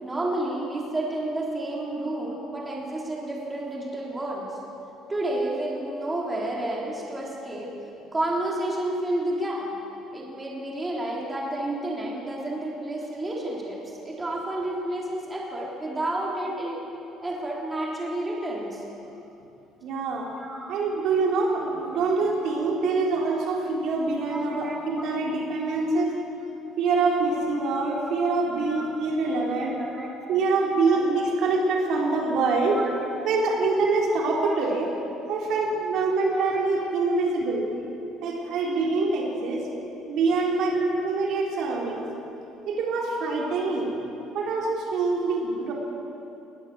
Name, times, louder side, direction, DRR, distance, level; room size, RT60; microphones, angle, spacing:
voice 1, 0.0-4.5 5.1-7.7 8.1-9.7 10.1-16.8 17.2-18.8 20.4-20.7 24.3-25.1 28.6-28.9 29.7-30.1 30.8-31.0 32.7-32.9 34.0-34.1 36.3-36.9 37.4-37.5 40.7-41.1 41.4-41.6 43.9-44.1 45.3-45.4, right 1 dB, 15° right, -3 dB, 3.6 m, -31 dB
voice 2, 19.8-20.3 20.7-26.1 26.8-29.8 30.3-32.8 33.2-34.9 35.3-37.7 38.2-39.6 40.0-40.8 41.0-42.1 42.7-43.9 44.3-45.7, right 3 dB, 60° right, -1 dB, 4.2 m, -25 dB
20.0 x 19.5 x 7.9 m, 2.9 s
cardioid pair, 140°, 0 cm